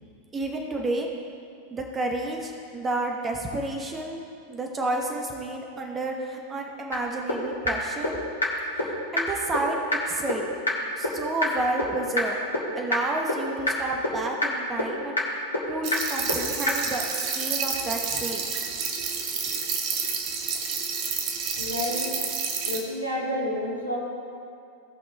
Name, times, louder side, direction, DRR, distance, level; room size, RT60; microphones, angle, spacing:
voice 1, 0.3-1.1 1.7-4.2 4.5-8.2 9.1-9.8 10.1-10.4 11.0-12.4 12.8-15.2 15.7-18.6, right 2 dB, 20° right, 2 dB, 1.0 m, -30 dB
sound 1, 6.9-7.0 7.3-7.4 7.7-7.8 8.0-8.1 8.4-8.5 8.8-8.9 9.2-9.3 9.5-9.6 9.9-10.0 10.3-10.4 10.7-10.8 11.0-11.1 11.4-11.5 11.8-11.9 12.2-12.3 12.5-12.6 12.9-13.0 13.3-13.4 13.7-13.8 14.0-14.1 14.4-14.5 14.8-14.9 15.2-15.3 15.5-15.6 15.9-16.0 16.3-16.4 16.7-16.8, left 2 dB, 75° left, 1.9 m, -23 dB
sound 2, 15.8-22.8, right 5 dB, 40° right, 1.1 m, -29 dB
voice 2, 21.6-22.1 22.6-24.0, left 1 dB, 90° right, -5 dB, 2.2 m, -29 dB
17.0 x 5.7 x 3.3 m, 2.5 s
figure-of-eight pair, 90°, 0 cm